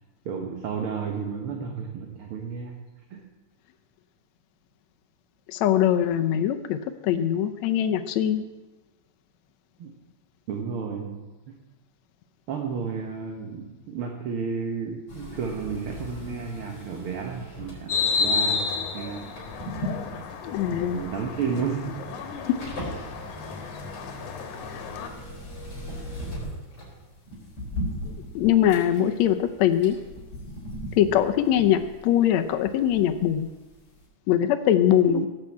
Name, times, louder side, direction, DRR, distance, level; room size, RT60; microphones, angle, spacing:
voice 1, 0.3-2.8 3.1-3.2 9.8-9.9 10.5-11.6 12.5-19.3 20.9-22.1 35.1-35.2, right 6 dB, 55° right, 3 dB, 1.8 m, -32 dB
voice 2, 5.5-8.4 20.4-21.0 22.5-22.6 24.7-25.1 28.4-30.0 31.0-33.5 34.3-35.3, left 10 dB, 75° left, 6 dB, 2.0 m, -22 dB
sound 1, 15.1-33.7 34.0-34.1, equal, 45° left, 5.2 m, -39 dB
sound 2, 17.9-25.1, left 5 dB, 90° left, 2.8 m, -31 dB
17.5 x 6.7 x 8.5 m, 1.2 s
omnidirectional pair, 3.4 m